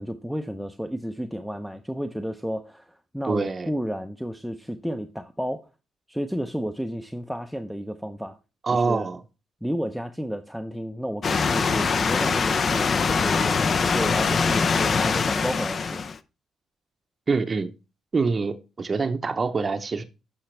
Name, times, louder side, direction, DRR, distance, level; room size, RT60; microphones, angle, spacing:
voice 1, 0.0-5.7 6.1-8.4 8.7-9.1 9.6-16.0, equal, ahead, 0.6 m, -32 dB
voice 2, 3.3-3.7 8.6-9.2 17.3-17.7 18.1-20.0, right 4 dB, 35° right, 0.7 m, -25 dB
sound 1, 11.2-16.2, left 5 dB, 45° left, 0.5 m, -23 dB
10.0 x 5.7 x 3.3 m
cardioid pair, 90°, 0 cm